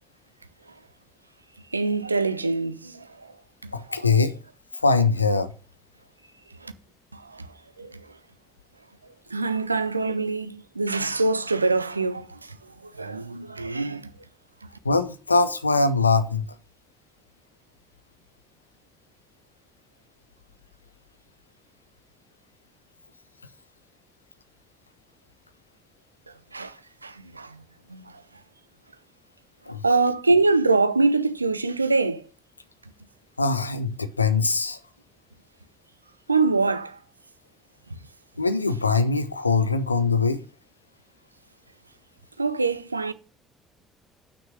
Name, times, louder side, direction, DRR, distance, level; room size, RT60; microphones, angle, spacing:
voice 1, 1.7-3.0 4.0-4.1 6.6-6.7 7.3-7.5 7.8-7.9 9.3-12.4 13.0-14.1 26.5-26.7 27.0-27.6 27.9-28.0 29.8-32.2 36.3-37.0 42.4-43.1, right 3 dB, 85° right, 0.5 m, -24 dB
voice 2, 3.7-4.4 4.8-5.5 14.8-16.4 29.7-29.8 33.4-34.8 38.4-40.4, left 4 dB, 85° left, 0.5 m, -22 dB
6.2 x 5.8 x 6.5 m
figure-of-eight pair, 50°, 0 cm